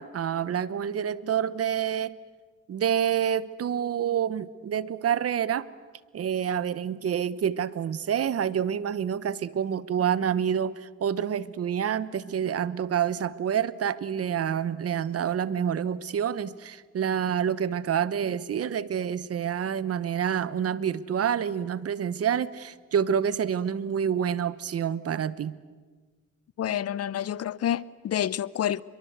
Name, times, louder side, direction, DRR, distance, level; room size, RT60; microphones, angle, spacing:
voice 1, 0.0-2.2 2.7-5.7 6.1-25.6, right 8 dB, 50° right, 1.1 m, -28 dB
voice 2, 26.6-28.8, left 10 dB, 55° left, 0.7 m, -28 dB
29.0 x 23.0 x 8.1 m
cardioid pair, 90°, 30 cm